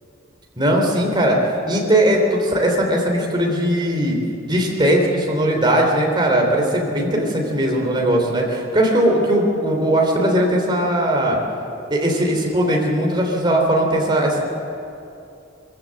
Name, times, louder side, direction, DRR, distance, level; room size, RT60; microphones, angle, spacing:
voice 1, 0.6-1.4 1.7-4.2 4.4-11.4 11.9-14.4, right 1 dB, 20° right, 0 dB, 3.4 m, -19 dB
23.0 x 15.5 x 7.7 m, 2.7 s
head